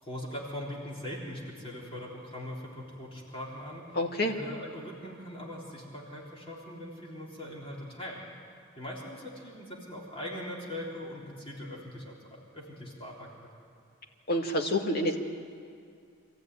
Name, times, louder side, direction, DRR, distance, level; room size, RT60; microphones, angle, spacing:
voice 1, 0.0-8.2 8.8-13.5, left 1 dB, 25° left, -4 dB, 3.6 m, -41 dB
voice 2, 3.9-4.3 14.3-15.2, left 1 dB, 50° left, 2 dB, 2.0 m, -28 dB
25.0 x 15.0 x 9.5 m, 2.3 s
head